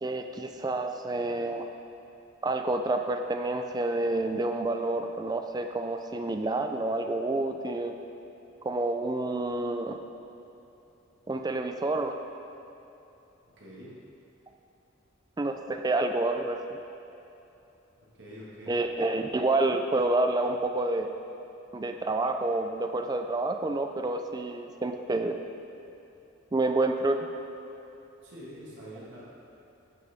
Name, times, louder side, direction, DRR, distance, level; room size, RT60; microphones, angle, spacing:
voice 1, 0.0-1.7 2.4-7.9 8.6-10.0 11.3-12.1 15.4-16.8 18.7-21.1 21.7-25.4 26.5-27.2, right 2 dB, 20° right, 5 dB, 0.4 m, -28 dB
voice 2, 13.4-14.0 18.0-18.8 28.2-29.2, equal, 60° right, -7 dB, 1.7 m, -46 dB
10.5 x 6.2 x 3.5 m, 3.0 s
head